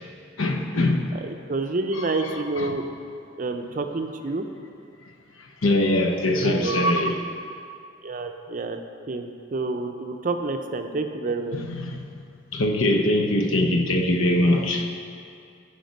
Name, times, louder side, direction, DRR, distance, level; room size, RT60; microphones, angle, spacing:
voice 1, 0.4-1.1 1.9-2.3 2.6-2.8 5.6-7.2 11.5-12.0 12.5-14.9, left 1 dB, 85° left, 4 dB, 0.8 m, -22 dB
voice 2, 1.1-2.8 3.4-4.4 6.4-6.8 8.0-8.8 9.1-11.6, right 3 dB, 40° right, 6 dB, 0.5 m, -28 dB
9.2 x 5.1 x 5.2 m, 2.4 s
head